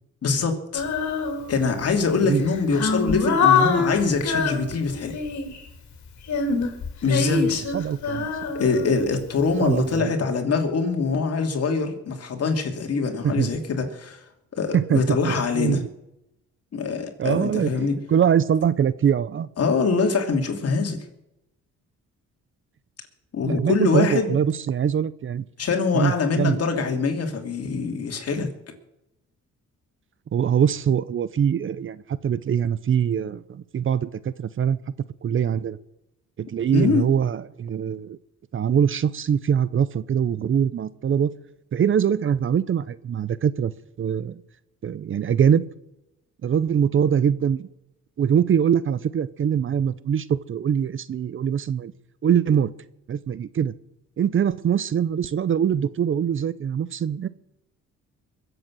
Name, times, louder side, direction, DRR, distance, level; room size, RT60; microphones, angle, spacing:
voice 1, 0.2-0.8 1.5-5.2 7.0-7.6 8.5-14.2 14.6-15.8 16.7-18.0 19.6-21.0 23.3-24.3 25.6-28.5 36.7-37.1, left 4 dB, 55° left, 4 dB, 2.9 m, -24 dB
Female singing, 0.7-1.8 2.4-5.6 6.2-9.4, left 5 dB, 70° left, 3.2 m, -24 dB
voice 2, 7.7-8.3 9.6-10.1 13.2-13.5 14.7-15.9 17.2-17.7 18.1-19.5 23.4-25.4 25.9-26.6 30.3-34.8 35.2-35.8 36.4-38.2 38.5-41.3 41.7-43.7 44.0-44.4 44.8-45.6 46.4-47.7 48.2-51.9 52.2-52.7 53.1-53.7 54.2-57.3, right 8 dB, 45° right, 17 dB, 0.7 m, -23 dB
22.5 x 8.0 x 6.3 m, 0.88 s
cardioid pair, 90°, 30 cm